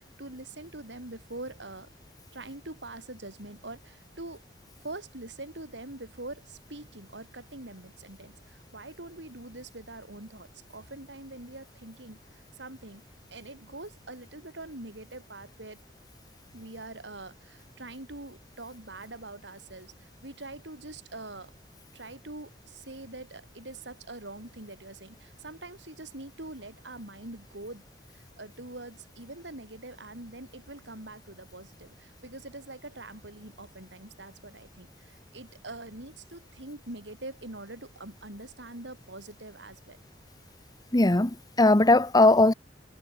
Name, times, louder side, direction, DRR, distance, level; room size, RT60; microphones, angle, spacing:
voice 1, 0.0-1.9 2.3-4.4 4.8-13.0 13.3-15.8 16.5-21.5 21.9-27.8 28.1-40.0, right 2 dB, 90° right, 5.8 m, -44 dB
voice 2, 40.9-42.5, left 2 dB, 20° left, 1.0 m, -19 dB
head